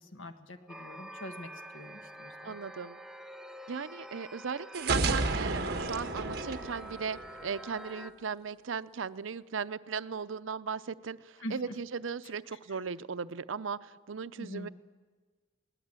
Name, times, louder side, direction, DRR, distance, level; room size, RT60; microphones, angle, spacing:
voice 1, 0.0-2.6 11.4-11.6 12.5-12.8 14.4-14.7, equal, 90° left, 7 dB, 1.6 m, -44 dB
sound 1, 0.7-8.1, equal, ahead, 0.8 m, -47 dB
voice 2, 2.4-3.0 3.7-14.7, right 5 dB, 90° right, 14 dB, 0.6 m, -37 dB
sound 2, 4.7-7.6, right 3 dB, 55° right, 1.5 m, -31 dB
22.0 x 18.5 x 9.0 m, 1.4 s
head